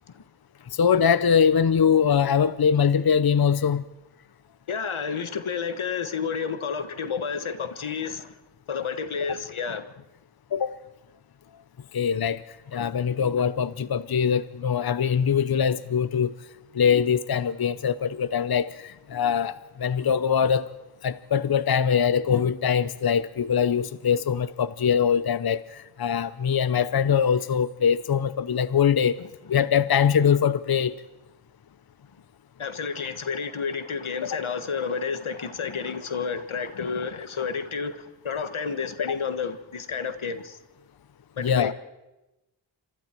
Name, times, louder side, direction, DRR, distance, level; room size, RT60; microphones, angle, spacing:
voice 1, 0.7-3.8 9.2-9.4 10.5-10.8 11.9-12.4 12.7-16.3 16.7-20.7 21.0-29.2 29.5-30.9 34.2-34.4 39.1-39.2 41.4-41.7, left 7 dB, 50° left, 0.7 m, -23 dB
voice 2, 4.7-8.3 8.7-9.9 32.6-40.6 41.4-41.7, left 6 dB, 90° left, 1.5 m, -30 dB
28.5 x 26.0 x 4.5 m
wide cardioid pair, 80°, 47 cm